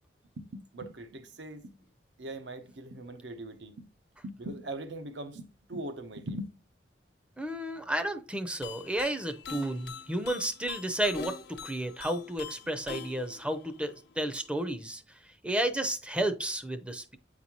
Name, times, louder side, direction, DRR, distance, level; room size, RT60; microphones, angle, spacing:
voice 1, 0.4-1.8 2.2-3.9 4.2-6.5, right 1 dB, 85° right, 0.8 m, -41 dB
voice 2, 7.4-17.2, right 1 dB, 5° right, 0.5 m, -32 dB
sound 1, 8.6-14.5, left 5 dB, 65° left, 0.6 m, -44 dB
8.1 x 4.1 x 2.9 m
head